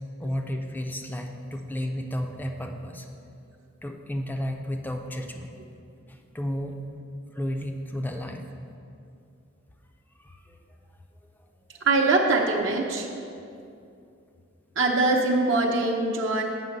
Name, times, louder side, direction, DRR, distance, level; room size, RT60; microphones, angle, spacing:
voice 1, 0.2-3.1 3.8-5.6 6.1-6.8 7.3-8.4 10.2-10.6 11.7-11.8, equal, 10° left, 4 dB, 0.4 m, -32 dB
voice 2, 11.8-13.1 14.8-16.4, right 3 dB, 65° right, 0 dB, 0.7 m, -23 dB
7.7 x 5.7 x 5.4 m, 2.5 s
head